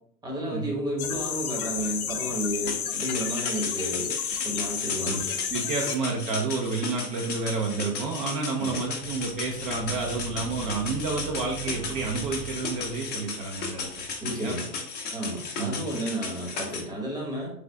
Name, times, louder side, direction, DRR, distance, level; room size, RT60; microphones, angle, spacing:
voice 1, 0.2-4.1 4.4-5.3 8.6-8.8 14.2-14.7 15.1-17.5, right 1 dB, 10° right, -2 dB, 1.1 m, -32 dB
sound 1, 1.0-5.9, left 8 dB, 60° left, 0.7 m, -31 dB
sound 2, 2.7-16.8, left 4 dB, 20° left, 0.7 m, -35 dB
voice 2, 5.0-14.5 15.6-15.8, right 4 dB, 35° right, -1 dB, 0.7 m, -30 dB
sound 3, 9.0-14.3, right 6 dB, 75° right, 1.2 m, -43 dB
3.9 x 3.3 x 3.4 m, 0.68 s
figure-of-eight pair, 95°, 49 cm